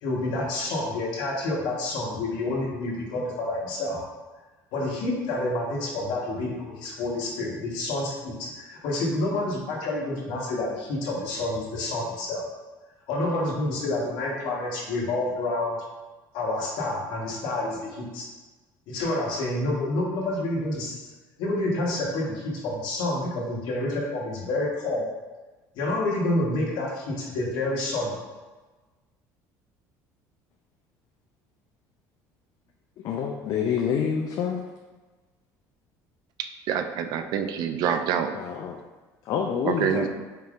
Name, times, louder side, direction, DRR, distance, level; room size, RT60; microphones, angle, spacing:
voice 1, 0.0-4.0 4.7-12.4 13.1-15.8 16.3-18.2 18.9-21.0 21.4-25.1 25.7-28.1, left 2 dB, 70° left, -3 dB, 1.2 m, -28 dB
voice 2, 33.0-34.7 38.3-38.8 39.3-40.1, left 7 dB, 55° left, 2 dB, 0.4 m, -27 dB
voice 3, 36.4-38.3 39.7-40.1, right 8 dB, 60° right, 7 dB, 0.3 m, -26 dB
4.3 x 3.5 x 2.4 m, 1.2 s
cardioid pair, 130°, 8 cm